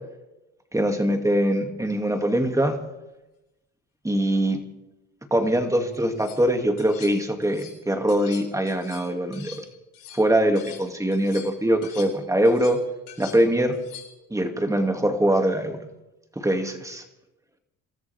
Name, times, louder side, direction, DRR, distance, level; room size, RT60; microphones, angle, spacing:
voice 1, 0.7-2.8 4.0-4.6 5.3-9.6 10.1-12.8 13.2-13.8 14.3-15.8 16.4-17.0, right 1 dB, 10° right, 4 dB, 2.5 m, -22 dB
sound 1, 5.9-6.4 6.8-7.8 8.1-10.9 11.1-14.3, left 9 dB, 75° left, 4.2 m, -45 dB
27.0 x 13.5 x 3.6 m, 0.96 s
supercardioid pair, 85°, 36 cm